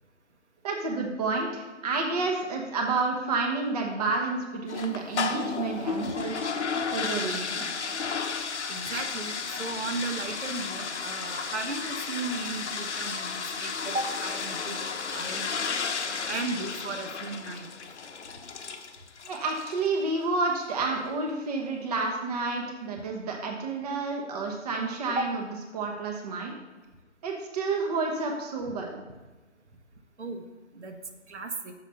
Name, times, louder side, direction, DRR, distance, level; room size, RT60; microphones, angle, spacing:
voice 1, 0.6-6.3 6.9-7.7 19.2-25.4 25.7-26.5 27.2-29.0, right 3 dB, 30° right, 1 dB, 1.0 m, -30 dB
sound 1, 4.7-19.9, left 5 dB, 65° left, 0.9 m, -33 dB
voice 2, 8.7-15.5 16.3-17.7 25.2-25.3 30.2-30.4 30.7-30.9 31.3-31.7, right 3 dB, 65° right, 5 dB, 1.2 m, -35 dB
7.0 x 5.1 x 6.6 m, 1.2 s
figure-of-eight pair, 145°, 37 cm